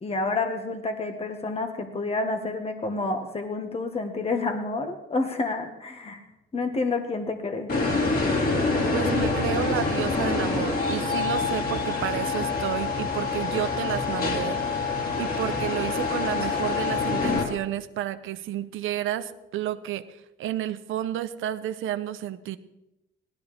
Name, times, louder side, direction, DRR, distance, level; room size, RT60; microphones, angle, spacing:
voice 1, 0.0-6.2 6.5-7.7, left 3 dB, 30° left, 5 dB, 1.7 m, -29 dB
sound 1, 7.7-17.4, left 3 dB, 50° left, 4.4 m, -26 dB
voice 2, 8.9-22.6, right 12 dB, 85° right, 12 dB, 0.9 m, -31 dB
18.0 x 13.0 x 3.5 m, 0.93 s
cardioid pair, 90°, 20 cm